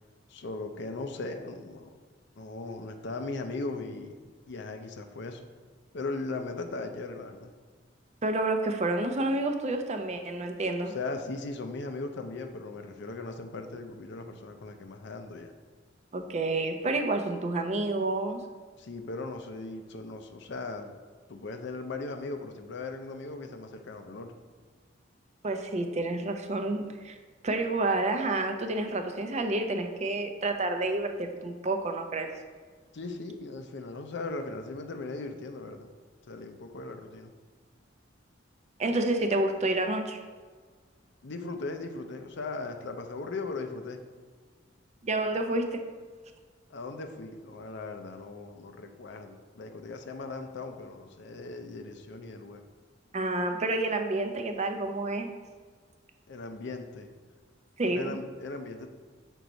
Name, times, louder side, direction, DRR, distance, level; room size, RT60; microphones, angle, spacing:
voice 1, 0.3-2.0 2.3-4.2 4.5-5.5 5.9-7.5 10.9-15.5 18.8-20.9 21.3-24.3 32.9-35.9 36.3-37.3 41.2-44.0 46.7-52.6 56.3-57.1 57.9-58.9, left 3 dB, 65° left, 6 dB, 0.6 m, -38 dB
voice 2, 8.2-10.9 16.1-18.4 25.4-27.2 27.4-32.3 38.8-40.2 45.0-45.8 53.1-55.3 57.8-58.1, right 2 dB, 35° right, 5 dB, 0.5 m, -29 dB
6.3 x 4.5 x 4.0 m, 1.5 s
head